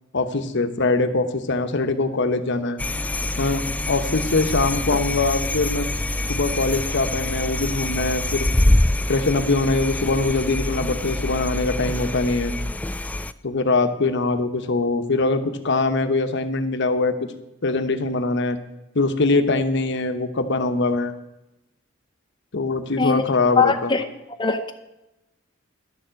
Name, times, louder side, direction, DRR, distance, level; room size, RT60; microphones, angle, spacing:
voice 1, 0.1-2.8 3.4-5.9 6.3-8.5 9.1-12.5 13.4-17.1 17.6-18.6 18.9-21.2 22.5-23.9, left 3 dB, 60° left, 9 dB, 1.0 m, -22 dB
sound 1, 2.8-13.3, left 1 dB, 5° left, 0.3 m, -25 dB
voice 2, 23.6-24.0 24.4-24.7, left 5 dB, 25° left, 5 dB, 0.7 m, -20 dB
11.5 x 7.1 x 7.7 m, 0.93 s
head